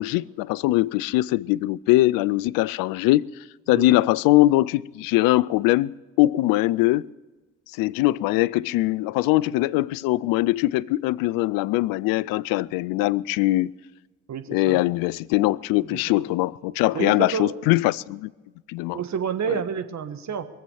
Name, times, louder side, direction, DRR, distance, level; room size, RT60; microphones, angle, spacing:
voice 1, 0.0-3.3 3.7-7.1 7.8-13.7 14.5-18.3 18.7-19.0 19.5-19.6, left 17 dB, 60° left, 0.5 m, -22 dB
voice 2, 14.3-14.8 15.8-16.2 16.9-17.6 18.9-20.4, right 7 dB, 45° right, 1.5 m, -29 dB
22.5 x 7.8 x 7.1 m
figure-of-eight pair, 45°, 38 cm